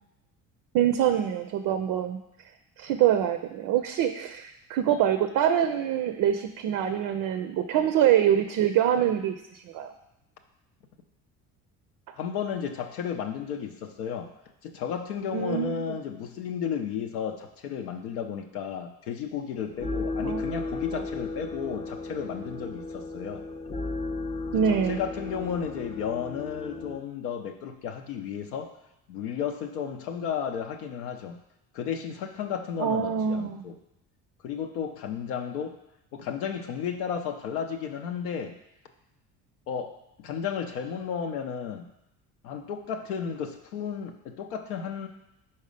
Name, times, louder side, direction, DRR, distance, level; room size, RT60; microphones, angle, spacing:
voice 1, 0.7-2.2 2.8-9.9 15.3-15.9 20.2-20.5 24.5-25.0 32.8-33.6, right 9 dB, 45° right, 9 dB, 0.5 m, -25 dB
voice 2, 12.2-14.3 14.6-23.4 24.5-28.7 29.1-31.4 31.7-33.8 34.4-35.8 36.1-38.6 39.7-41.9 42.4-45.1, left 7 dB, 75° left, 4 dB, 0.6 m, -33 dB
sound 1, 19.5-27.0, left 3 dB, 15° left, 0.4 m, -35 dB
4.7 x 4.2 x 4.9 m, 0.85 s
hypercardioid pair, 60°, 46 cm